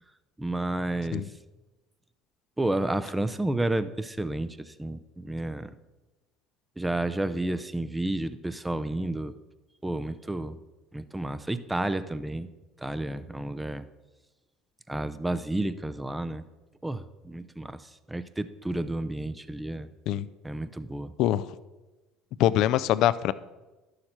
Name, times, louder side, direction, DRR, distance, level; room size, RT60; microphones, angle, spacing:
voice 1, 0.4-1.3 2.6-5.7 6.8-9.3 9.8-10.6 10.9-12.5 12.8-13.8 14.9-16.4 16.8-19.9 20.4-21.1, right 1 dB, 10° right, 12 dB, 0.6 m, -31 dB
voice 2, 22.4-23.3, left 12 dB, 65° left, 16 dB, 0.4 m, -23 dB
11.5 x 6.6 x 4.4 m, 1.1 s
supercardioid pair, 80°, 0 cm